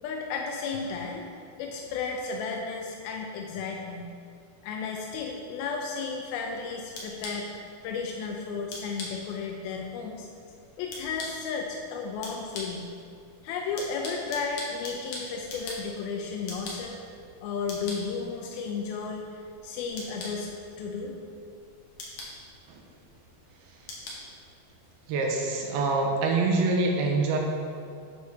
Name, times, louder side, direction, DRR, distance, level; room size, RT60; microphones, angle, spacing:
voice 1, 0.0-1.3 1.6-4.1 4.6-7.5 7.8-10.3 10.8-12.9 13.4-17.0 17.4-19.2 19.6-20.5 20.8-21.2, left 5 dB, 85° left, 1 dB, 2.6 m, -33 dB
sound 1, 6.3-25.1, left 2 dB, 60° left, 3.0 m, -44 dB
voice 2, 25.1-27.4, right 3 dB, 90° right, 1 dB, 3.0 m, -25 dB
9.7 x 6.1 x 5.8 m, 2.3 s
omnidirectional pair, 4.3 m